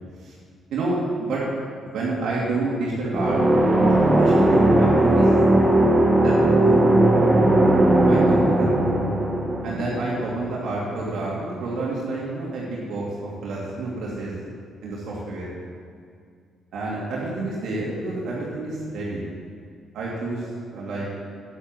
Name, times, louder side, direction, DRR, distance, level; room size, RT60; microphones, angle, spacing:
voice 1, 0.7-1.5 1.8-3.4 3.8-5.4 6.2-7.4 8.0-8.7 9.6-14.3 14.8-15.5 16.7-19.2 19.9-20.5 20.7-21.1, right 2 dB, 75° right, -6 dB, 2.7 m, -29 dB
sound 1, 3.1-10.8, right 1 dB, 20° right, 1.7 m, -18 dB
9.4 x 8.4 x 7.7 m, 2.2 s
cardioid pair, 90°, 0 cm